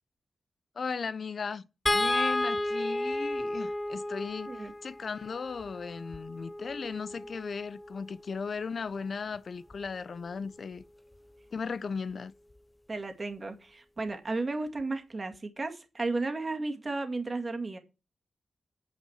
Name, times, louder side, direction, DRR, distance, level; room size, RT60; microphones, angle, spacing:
voice 1, 0.8-1.6 1.9-10.8 11.5-12.3, left 5 dB, 60° left, 0.6 m, -36 dB
sound 1, 1.9-8.2 9.7-9.9 10.2-10.4, left 1 dB, 15° left, 0.5 m, -33 dB
voice 2, 12.9-17.8, right 3 dB, 35° right, 2.1 m, -34 dB
8.8 x 5.6 x 7.1 m
cardioid pair, 80°, 0 cm